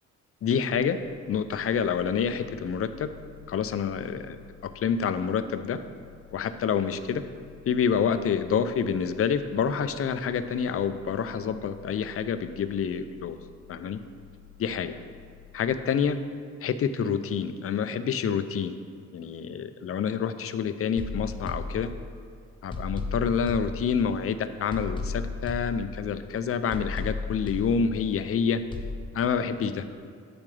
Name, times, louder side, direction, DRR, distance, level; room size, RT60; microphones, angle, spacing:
voice 1, 0.4-1.0 1.3-3.1 3.5-4.4 4.6-5.8 6.3-7.2 7.7-13.4 13.7-14.0 14.6-14.9 15.5-16.2 16.6-18.7 19.1-21.9 22.6-28.6 29.1-29.9, left 7 dB, 50° left, 11 dB, 0.5 m, -27 dB
sound 1, 0.7-15.9, left 15 dB, 80° left, 1.1 m, -52 dB
sound 2, 21.0-22.3 22.7-24.3 24.7-26.3 26.7-28.3 28.7-29.0, left 3 dB, 15° left, 1.0 m, -35 dB
8.8 x 7.0 x 3.3 m, 2.3 s
cardioid pair, 85°, 30 cm